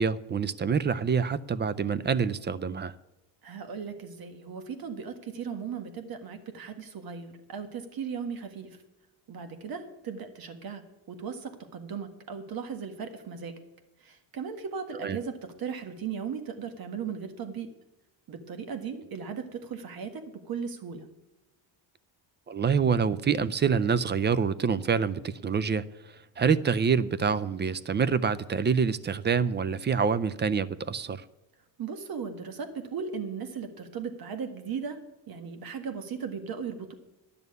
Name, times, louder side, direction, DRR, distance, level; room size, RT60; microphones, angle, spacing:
voice 1, 0.0-2.9 15.0-15.2 22.5-25.8 26.4-31.2, right 6 dB, 25° right, 17 dB, 0.4 m, -26 dB
voice 2, 3.4-8.8 9.3-10.8 11.1-13.6 14.0-17.7 18.3-21.1 31.8-35.0 35.3-36.9, right 6 dB, 55° right, 7 dB, 1.7 m, -37 dB
11.0 x 6.8 x 9.4 m, 0.97 s
cardioid pair, 115°, 43 cm